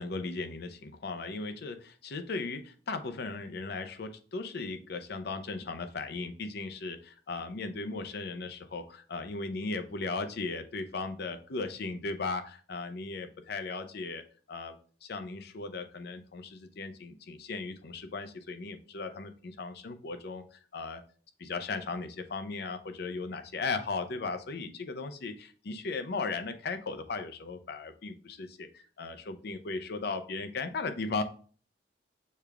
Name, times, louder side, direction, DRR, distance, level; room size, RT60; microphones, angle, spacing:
voice 1, 0.0-14.2 14.5-21.0 21.4-31.2, left 3 dB, 60° left, 9 dB, 0.5 m, -37 dB
6.5 x 2.3 x 3.4 m, 0.42 s
head